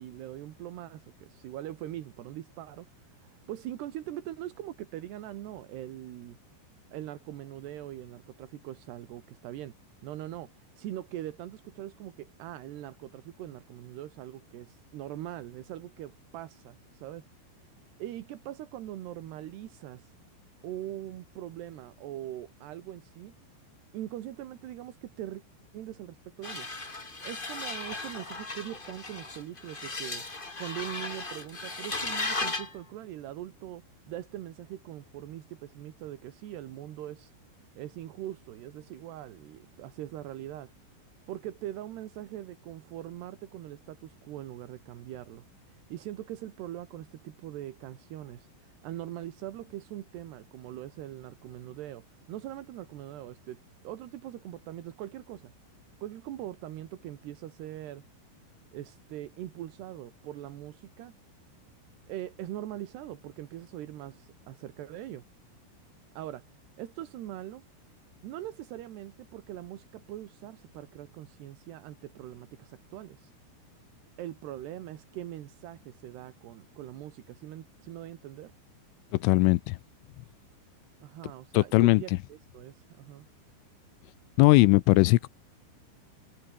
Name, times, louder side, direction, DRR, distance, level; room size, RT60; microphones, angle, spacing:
voice 1, 0.0-6.4 6.9-9.8 10.0-10.5 10.7-17.3 18.0-20.1 20.6-23.3 23.9-25.4 25.7-26.7 27.2-30.2 30.6-37.3 37.7-40.7 41.3-55.5 56.0-58.0 58.7-61.1 62.1-65.2 66.1-66.4 66.8-67.6 68.2-73.3 74.2-78.5 81.0-83.3, right 13 dB, 65° right, 3.3 m, -42 dB
sound 1, 26.4-32.7, left 3 dB, 70° left, 0.5 m, -36 dB
voice 2, 79.1-79.8 81.5-82.0 84.4-85.3, left 21 dB, 85° left, 3.1 m, -20 dB
omnidirectional pair, 5.9 m